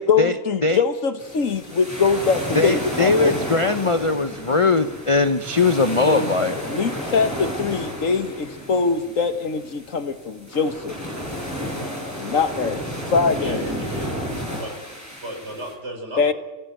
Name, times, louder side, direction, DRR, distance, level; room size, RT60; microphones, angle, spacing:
voice 1, 0.0-3.4 6.0-6.3 6.7-11.0 12.2-12.8 13.1-13.6 16.2-16.3, left 5 dB, 65° left, 10 dB, 1.7 m, -22 dB
sound 1, 1.2-15.7, equal, 10° right, 6.7 m, -32 dB
voice 2, 2.5-6.6, left 3 dB, 30° left, 10 dB, 0.7 m, -20 dB
voice 3, 13.4-14.2 14.6-14.8 15.2-16.3, equal, 50° right, 3 dB, 6.0 m, -34 dB
26.0 x 17.0 x 9.2 m, 1.2 s
omnidirectional pair, 1.5 m